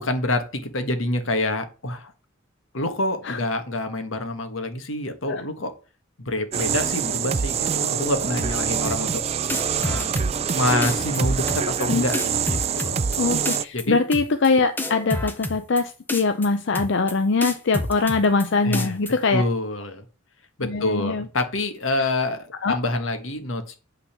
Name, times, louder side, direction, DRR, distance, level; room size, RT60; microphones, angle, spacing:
voice 1, 0.0-2.1 2.7-5.7 6.2-9.2 9.7-10.1 10.5-13.0 13.7-14.0 18.6-19.0 19.3-20.0 20.6-23.8, left 2 dB, 85° left, 7 dB, 1.5 m, -27 dB
sound 1, 6.5-13.6, right 7 dB, 30° right, 0.4 m, -25 dB
sound 2, 8.8-9.2 9.5-10.5 10.8-11.2 11.5-11.9 12.1-13.2 13.4-13.8 14.1-14.5 14.8-15.8 16.1-16.5 16.7-17.1 17.4-18.4 18.7-19.1, left 1 dB, 10° left, 0.9 m, -29 dB
voice 2, 13.2-19.4 20.6-21.3 22.0-22.1 22.6-22.8, left 4 dB, 65° left, 8 dB, 0.6 m, -22 dB
8.8 x 4.0 x 6.8 m, 0.35 s
head